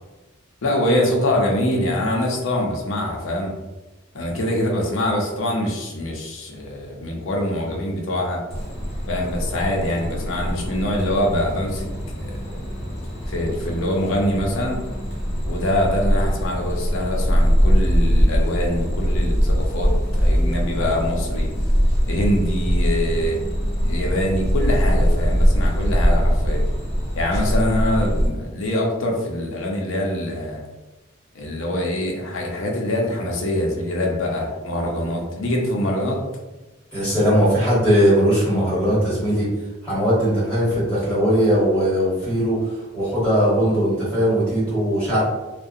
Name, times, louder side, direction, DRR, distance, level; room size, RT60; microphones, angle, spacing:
voice 1, 0.6-3.5 4.1-8.4 9.1-11.9 12.2-12.6 13.3-14.8 15.4-21.5 22.0-23.4 23.8-26.6 27.1-30.6 31.3-36.2, left 1 dB, 75° left, 0 dB, 0.6 m, -24 dB
sound 1, 8.5-28.3, equal, 30° left, 0.7 m, -22 dB
voice 2, 36.9-39.5 39.8-45.2, equal, 5° left, -9 dB, 1.2 m, -19 dB
2.4 x 2.2 x 2.6 m, 1.1 s
head